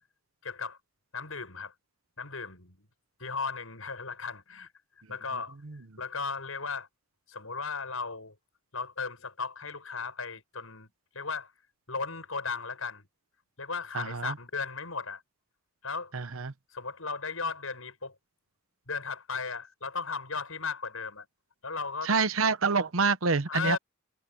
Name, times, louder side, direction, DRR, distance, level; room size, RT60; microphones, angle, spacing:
voice 1, 0.4-0.8 1.1-1.7 2.2-2.8 3.2-4.7 5.1-5.6 6.0-6.9 7.3-8.3 8.7-10.9 11.1-11.5 11.9-13.0 13.6-15.2 15.8-16.1 16.7-18.1 18.9-21.2 21.6-22.1 23.5-23.8, left 4 dB, 80° left, 6.7 m, -36 dB
voice 2, 13.9-14.3 16.1-16.5 22.0-23.8, right 4 dB, 75° right, 1.0 m, -27 dB
head